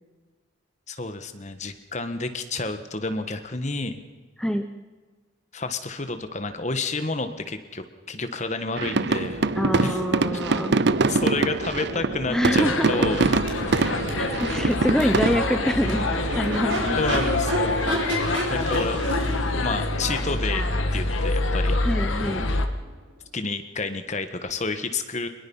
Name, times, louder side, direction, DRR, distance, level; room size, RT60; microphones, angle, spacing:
voice 1, 0.9-4.0 5.5-9.5 9.8-10.0 10.3-10.4 11.1-13.4 17.0-17.8 18.5-19.0 19.6-20.6 20.9-21.8 23.3-25.3, left 3 dB, 35° left, 9 dB, 1.5 m, -30 dB
sound 1, 8.8-15.4, right 3 dB, 55° right, 0.6 m, -24 dB
Crowd / Race car auto racing / Accelerating revving vroom, 9.2-23.0, right 1 dB, 70° right, 4.8 m, -33 dB
voice 2, 9.6-10.8 12.3-13.0 13.8-16.1 16.4-17.0 17.7-17.8 21.8-22.5, equal, 5° left, 6 dB, 0.8 m, -26 dB
sound 2, 12.6-22.7, left 2 dB, 80° left, 1.8 m, -26 dB
22.5 x 21.5 x 5.6 m, 1.3 s
head